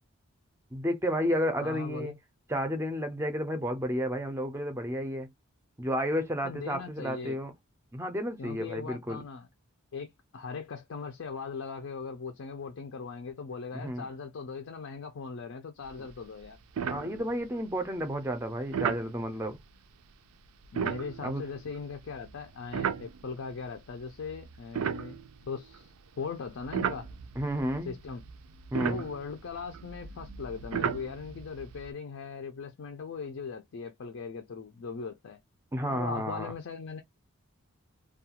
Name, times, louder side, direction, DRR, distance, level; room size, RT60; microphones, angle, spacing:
voice 1, 0.7-2.1 2.5-5.3 5.8-7.5 7.9-9.2 13.7-14.1 16.9-19.6 21.2-21.4 27.4-27.9 28.7-29.0 35.7-36.5, equal, 10° right, 0.5 m, -31 dB
voice 2, 1.6-2.1 6.4-7.4 8.4-9.5 9.9-16.6 20.7-25.2 25.4-27.1 27.9-28.2 28.8-35.4 35.9-37.0, left 5 dB, 65° left, 0.4 m, -39 dB
sound 1, 15.9-16.1 16.4-16.5 16.8-17.6 18.7-19.1 20.6-23.5 24.1-25.9 26.4-31.9, right 7 dB, 80° right, 0.4 m, -35 dB
2.3 x 2.3 x 2.8 m
head